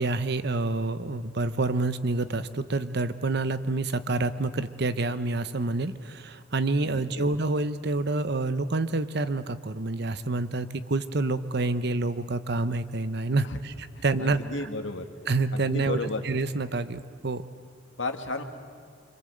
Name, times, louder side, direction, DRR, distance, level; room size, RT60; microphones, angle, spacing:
voice 1, 0.0-14.4 15.3-16.0 16.2-17.4, right 2 dB, 55° right, 12 dB, 0.9 m, -28 dB
voice 2, 6.8-7.2 13.4-13.6 14.0-15.1 15.5-16.2 18.0-18.4, left 2 dB, 75° left, 6 dB, 2.0 m, -33 dB
26.5 x 24.5 x 7.9 m, 2.1 s
head